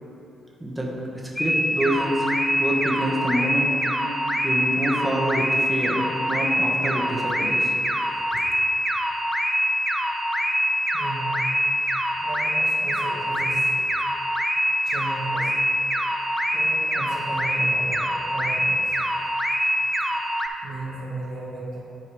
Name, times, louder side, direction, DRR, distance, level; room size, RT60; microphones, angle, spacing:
voice 1, 0.6-0.9 1.4-2.3 2.5-3.7 4.4-7.7 8.3-8.4, equal, 10° right, -3 dB, 1.4 m, -26 dB
sound 1, 1.4-20.5, equal, 15° left, 0.7 m, -24 dB
voice 2, 10.9-11.5 11.8-11.9 12.2-13.9 14.8-15.6 16.5-19.0 20.6-21.8, right 2 dB, 70° right, -5 dB, 1.5 m, -35 dB
10.5 x 4.7 x 3.2 m, 2.9 s
hypercardioid pair, 45°, 0 cm